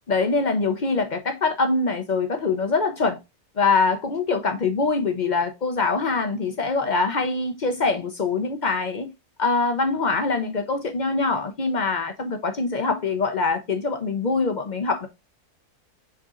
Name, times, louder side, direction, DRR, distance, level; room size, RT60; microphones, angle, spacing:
voice 1, 0.1-3.2 3.6-9.1 9.4-15.1, left 4 dB, 55° left, 0.5 m, -24 dB
5.5 x 3.8 x 2.4 m
omnidirectional pair, 1.6 m